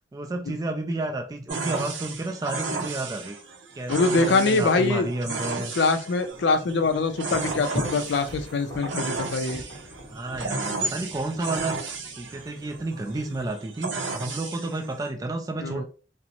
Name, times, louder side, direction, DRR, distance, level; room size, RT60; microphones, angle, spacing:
voice 1, 0.1-3.4 3.7-5.7 10.1-11.8 12.2-15.8, right 2 dB, 20° right, 0.3 m, -31 dB
sound 1, 1.5-15.1, right 3 dB, 85° right, 0.6 m, -34 dB
voice 2, 3.9-5.1 5.8-9.6 15.6-15.8, left 3 dB, 65° left, 0.4 m, -24 dB
sound 2, 6.3-13.5, equal, 20° left, 0.9 m, -40 dB
2.5 x 2.0 x 2.8 m
head